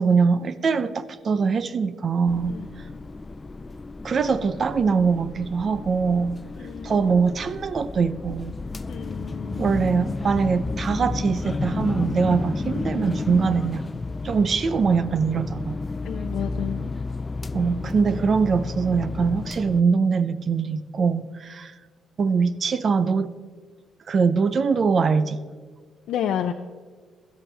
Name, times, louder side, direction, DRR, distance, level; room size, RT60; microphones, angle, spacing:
voice 1, 0.0-2.6 4.0-6.4 6.8-8.5 9.6-13.8 14.2-15.8 17.5-21.7 22.2-23.3 24.1-25.4, right 5 dB, 45° right, 14 dB, 0.6 m, -22 dB
sound 1, 2.3-19.8, left 3 dB, 25° left, 0.4 m, -32 dB
voice 2, 6.6-7.2 8.9-9.7 16.0-16.8 26.1-26.5, left 9 dB, 80° left, 6 dB, 0.5 m, -30 dB
16.5 x 12.5 x 3.4 m, 1.5 s
cardioid pair, 90°, 0 cm